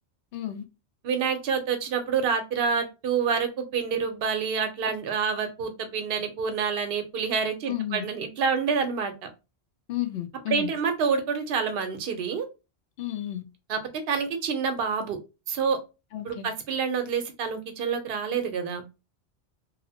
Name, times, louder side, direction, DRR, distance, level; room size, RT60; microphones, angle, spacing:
voice 1, 0.3-0.6 7.7-8.0 9.9-10.7 13.0-13.4 16.1-16.5, left 13 dB, 70° left, 0.8 m, -32 dB
voice 2, 1.0-9.3 10.5-12.5 13.7-13.8 14.1-15.2 15.5-15.8 16.2-18.8, right 6 dB, 65° right, 0.8 m, -27 dB
2.8 x 2.0 x 2.7 m
omnidirectional pair, 1.1 m